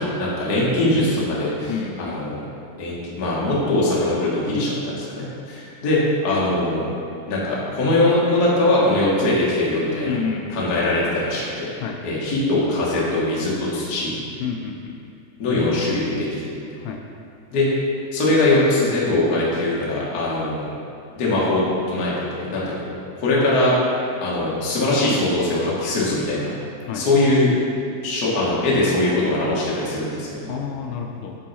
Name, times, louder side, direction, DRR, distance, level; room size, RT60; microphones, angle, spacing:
voice 1, 0.0-2.4 2.8-6.8 7.3-10.2 10.5-11.7 12.0-14.1 15.4-16.6 17.5-17.7 18.1-20.7 21.1-21.6 21.9-22.1 22.4-22.7 23.2-23.8 24.2-26.5 26.9-27.5 28.0-30.5, left 2 dB, 45° left, -6 dB, 1.2 m, -21 dB
voice 2, 1.7-2.3 10.0-10.6 11.8-12.0 14.4-15.0 16.8-17.0 26.9-27.1 30.5-31.4, left 6 dB, 80° left, 2 dB, 2.2 m, -29 dB
10.0 x 4.5 x 4.2 m, 2.5 s
omnidirectional pair, 4.0 m